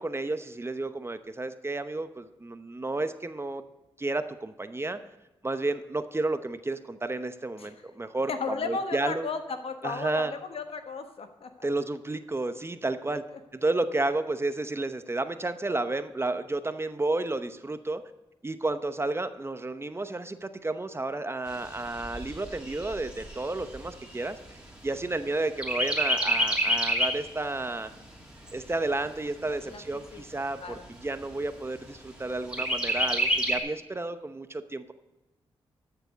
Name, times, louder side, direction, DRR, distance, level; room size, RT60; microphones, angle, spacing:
voice 1, 0.0-3.6 4.0-5.0 5.4-9.3 9.8-10.3 11.6-13.2 13.5-18.0 18.4-24.4 24.8-27.9 28.5-34.9, right 2 dB, 25° right, 10 dB, 0.9 m, -31 dB
voice 2, 8.3-11.7 13.1-13.2 29.6-29.8 30.1-30.2 30.6-30.9, left 4 dB, 70° left, 7 dB, 1.3 m, -35 dB
Chirp tweet, 21.5-25.2 25.6-27.3 27.7-27.8 28.2-29.2 29.8-29.9 30.2-30.3 30.7-31.3 32.5-33.6, equal, 10° right, 3.0 m, -28 dB
12.5 x 6.9 x 5.2 m, 1.0 s
cardioid pair, 55°, 10 cm